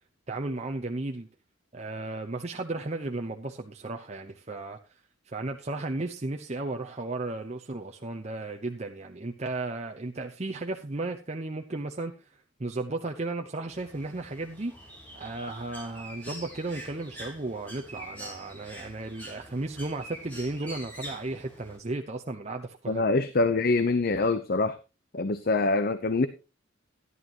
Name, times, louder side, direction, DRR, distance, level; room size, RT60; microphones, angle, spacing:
voice 1, 0.3-1.3 1.7-5.0 5.3-14.7 15.2-23.1, right 2 dB, 35° right, 0.8 m, -34 dB
Bird, 13.7-21.8, equal, 10° left, 4.3 m, -45 dB
voice 2, 22.9-24.7 25.1-26.3, left 3 dB, 50° left, 0.7 m, -25 dB
14.0 x 11.0 x 2.9 m
head